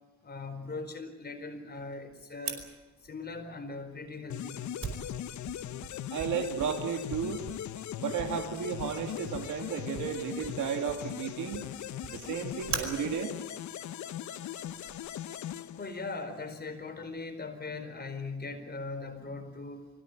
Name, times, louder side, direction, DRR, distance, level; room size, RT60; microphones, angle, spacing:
voice 1, 0.2-2.6 3.0-4.6 15.8-19.9, left 3 dB, 35° left, 6 dB, 4.5 m, -40 dB
Fire, 2.4-14.9, right 5 dB, 45° right, 5.0 m, -44 dB
sound 1, 4.3-16.4, left 11 dB, 70° left, 1.0 m, -40 dB
voice 2, 6.1-7.4 8.0-11.6 12.1-13.3, right 7 dB, 75° right, 4 dB, 2.4 m, -33 dB
24.5 x 16.5 x 9.1 m, 1.1 s
cardioid pair, 90°, 30 cm